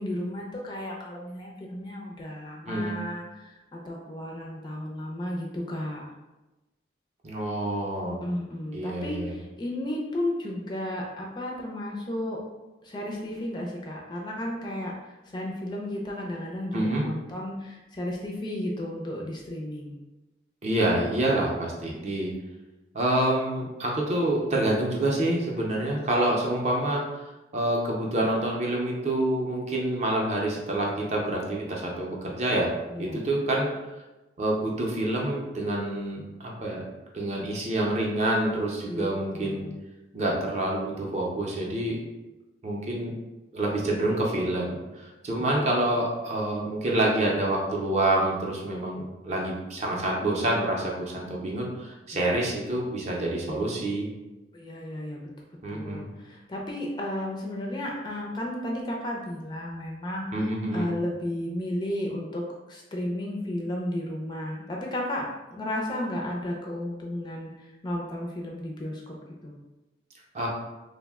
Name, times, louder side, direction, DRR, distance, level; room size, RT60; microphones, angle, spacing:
voice 1, 0.0-6.1 8.2-12.4 12.8-20.0 32.9-33.3 38.9-39.8 52.1-52.3 54.5-55.3 55.7-60.4 60.7-69.2 69.4-69.5, left 1 dB, 25° left, -1 dB, 0.3 m, -33 dB
voice 2, 2.7-3.0 7.2-8.2 8.7-9.3 16.7-17.1 20.6-22.3 22.9-27.0 27.5-32.7 33.0-33.7 34.4-36.9 37.1-39.6 40.1-42.0 42.6-43.1 43.5-54.1 55.6-56.1 60.3-60.9 70.3-70.5, right 1 dB, 35° right, -2 dB, 0.5 m, -27 dB
2.7 x 2.0 x 3.4 m, 1.1 s
head